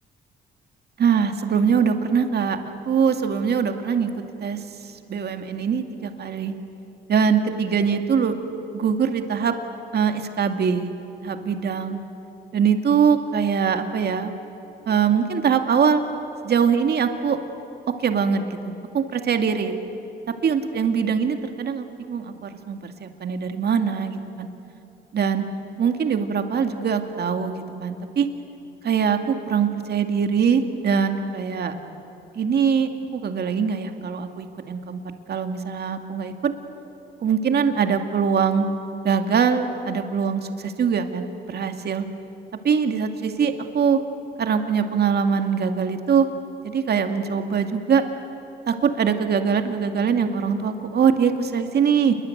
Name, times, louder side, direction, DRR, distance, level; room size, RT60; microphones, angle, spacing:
voice 1, 1.0-2.6 2.9-4.1 4.4-6.5 7.1-8.4 8.7-9.5 9.9-10.9 11.2-12.0 12.5-14.3 14.9-16.0 16.4-17.4 18.0-19.7 20.4-24.5 25.1-25.4 25.8-28.3 28.8-31.7 32.3-35.0 35.3-36.5 37.2-38.7 39.0-42.1 42.6-44.0 44.4-46.3 46.6-48.0 48.7-52.2, right 6 dB, 55° right, 6 dB, 2.3 m, -22 dB
28.5 x 22.5 x 9.3 m, 2.9 s
cardioid pair, 90°, 20 cm